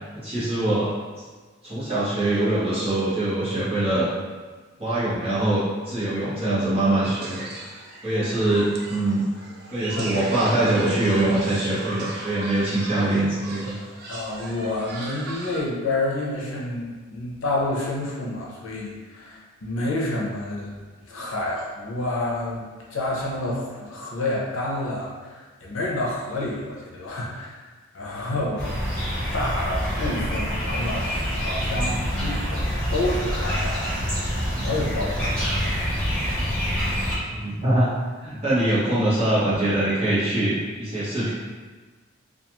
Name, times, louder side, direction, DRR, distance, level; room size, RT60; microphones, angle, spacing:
voice 1, 0.1-0.9 1.6-4.1 4.8-7.5 8.0-9.2 9.7-13.8 37.3-37.9 38.2-41.3, right 1 dB, 30° right, -11 dB, 0.9 m, -23 dB
sound 1, 7.0-15.6, right 2 dB, 50° right, 0.3 m, -38 dB
voice 2, 8.1-8.5 10.0-10.1 14.1-27.7 27.9-28.8 29.3-32.6 32.9-36.0, left 2 dB, 75° left, -4 dB, 0.6 m, -29 dB
sound 2, 28.6-37.2, equal, 5° left, 0.6 m, -26 dB
2.4 x 2.3 x 2.9 m, 1.4 s
head